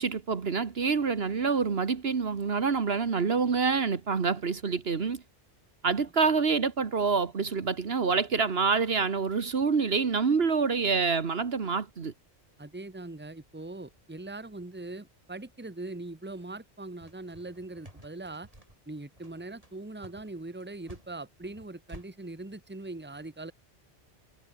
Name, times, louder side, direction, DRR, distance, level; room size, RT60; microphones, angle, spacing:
voice 1, 0.0-5.2 5.8-12.1, right 5 dB, 60° right, 1.6 m, -27 dB
voice 2, 12.6-18.5 18.9-23.5, right 2 dB, 10° right, 1.5 m, -41 dB
sound 1, 17.0-22.1, right 1 dB, 30° right, 5.9 m, -51 dB
omnidirectional pair, 1.1 m